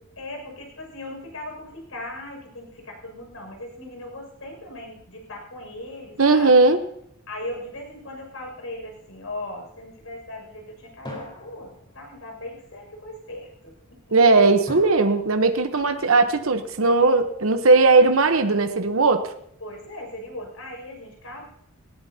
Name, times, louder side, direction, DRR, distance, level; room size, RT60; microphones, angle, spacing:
voice 1, 0.2-6.5 7.3-14.1 19.6-21.5, left 1 dB, 90° left, 2 dB, 6.5 m, -38 dB
voice 2, 6.2-6.8 14.1-19.3, right 3 dB, 80° right, 7 dB, 1.1 m, -18 dB
sound 1, 7.4-9.0 11.0-12.4 14.7-15.8, left 1 dB, 25° left, 4.6 m, -43 dB
18.5 x 17.5 x 2.9 m, 0.76 s
head